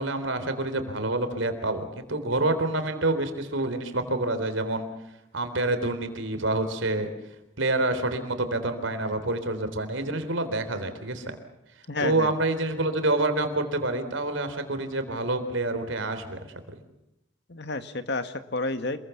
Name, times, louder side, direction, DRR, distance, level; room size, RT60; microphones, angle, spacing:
voice 1, 0.0-4.9 5.3-7.1 7.6-11.3 12.0-16.4, right 2 dB, 75° right, 9 dB, 3.8 m, -27 dB
voice 2, 11.9-12.3 17.5-19.0, left 2 dB, 60° left, 9 dB, 1.8 m, -30 dB
27.5 x 22.0 x 7.2 m, 0.87 s
head